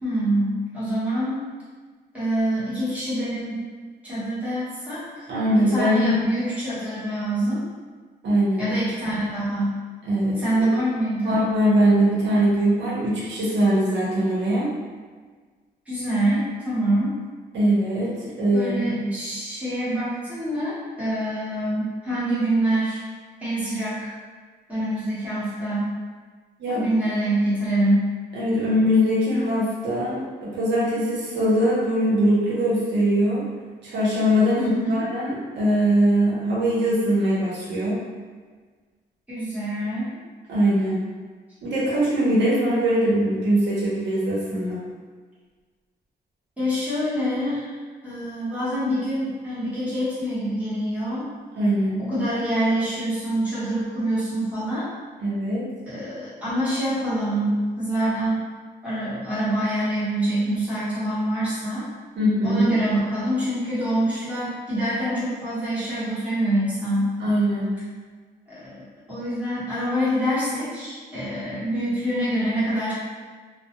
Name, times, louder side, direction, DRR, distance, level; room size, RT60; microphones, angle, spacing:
voice 1, 0.0-1.4 2.1-3.6 4.0-7.6 8.6-9.7 10.4-11.4 15.9-17.2 18.5-23.0 23.4-24.1 24.7-25.9 26.7-28.1 34.6-35.1 39.3-40.1 46.6-47.8 48.0-51.3 52.0-54.9 55.9-58.4 58.8-61.9 62.4-67.1 68.5-68.7 69.1-72.9, right 1 dB, 10° right, -11 dB, 1.0 m, -25 dB
voice 2, 5.3-6.1 8.2-8.7 10.1-10.7 11.2-14.7 17.5-19.1 26.6-26.8 28.3-33.4 33.8-38.0 40.5-41.0 41.6-44.8 51.6-52.0 55.2-55.7 62.1-62.6 67.2-67.8, equal, 85° right, -7 dB, 0.8 m, -22 dB
2.3 x 2.1 x 2.8 m, 1.5 s
wide cardioid pair, 135°, 18 cm